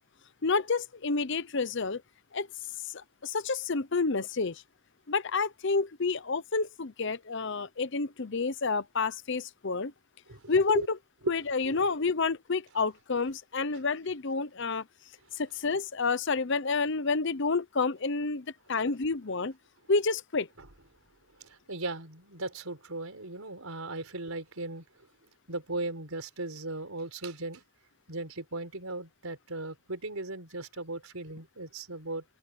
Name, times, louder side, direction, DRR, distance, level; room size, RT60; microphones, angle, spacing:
voice 1, 0.4-2.0 2.3-2.5 2.9-4.6 5.1-9.9 10.5-11.0 11.3-14.8 15.4-19.5 19.9-20.5, left 4 dB, 60° left, 0.8 m, -29 dB
voice 2, 10.3-10.9 11.2-11.3 11.6-11.8 20.6-20.7 21.4-25.1 25.5-27.6 28.1-32.2, right 2 dB, 85° right, 4.5 m, -37 dB
head